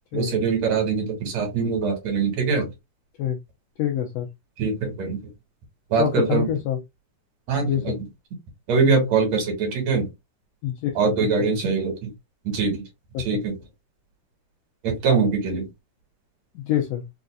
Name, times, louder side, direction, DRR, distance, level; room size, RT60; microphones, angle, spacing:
voice 1, 0.1-2.7 4.6-5.2 5.9-6.5 7.5-8.0 8.7-10.1 11.0-12.1 12.4-12.8 13.2-13.5 14.8-15.7, right 5 dB, 65° right, 2.3 m, -23 dB
voice 2, 3.8-4.3 6.0-6.8 7.7-8.0 10.6-10.9 11.2-11.3 13.1-13.2 16.5-17.0, left 11 dB, 80° left, 1.5 m, -25 dB
4.9 x 2.5 x 2.2 m
omnidirectional pair, 3.6 m